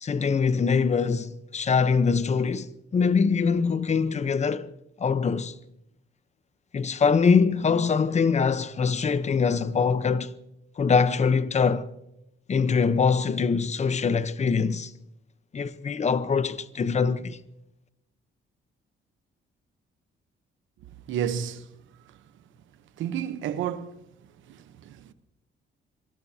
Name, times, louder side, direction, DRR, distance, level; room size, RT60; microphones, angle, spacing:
voice 1, 0.0-4.7 5.0-5.5 6.7-10.3 10.8-11.8 12.5-14.9 15.5-17.4, left 5 dB, 35° left, 0.9 m, -23 dB
voice 2, 21.1-21.7 23.0-24.0 24.5-25.1, right 9 dB, 90° right, 1.0 m, -31 dB
25.5 x 20.0 x 2.9 m
cardioid pair, 110°, 19 cm